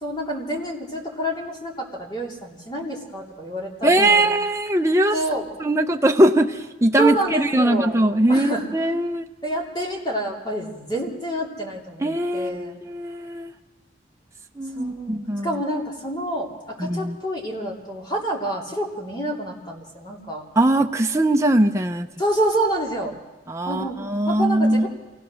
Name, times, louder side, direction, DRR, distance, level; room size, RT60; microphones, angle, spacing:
voice 1, 0.0-4.3 5.1-5.5 7.0-9.0 9.4-12.0 12.3-12.8 14.7-20.4 22.2-23.2 23.7-24.9, right 1 dB, 25° left, -1 dB, 3.1 m, -28 dB
voice 2, 3.8-5.2 5.6-9.3 12.0-13.5 14.6-15.6 16.8-17.2 20.6-22.1 23.5-24.9, right 1 dB, 15° right, 4 dB, 0.7 m, -20 dB
28.0 x 18.0 x 6.3 m, 1.1 s
head